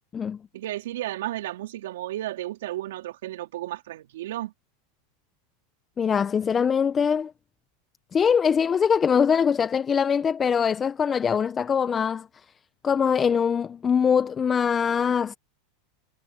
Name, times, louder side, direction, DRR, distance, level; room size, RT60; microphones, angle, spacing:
voice 1, 0.5-4.5, right 14 dB, 75° right, 4.2 m, -33 dB
voice 2, 6.0-7.3 8.1-12.3 12.8-15.3, left 7 dB, 25° left, 1.1 m, -22 dB
hypercardioid pair, 100°, 0 cm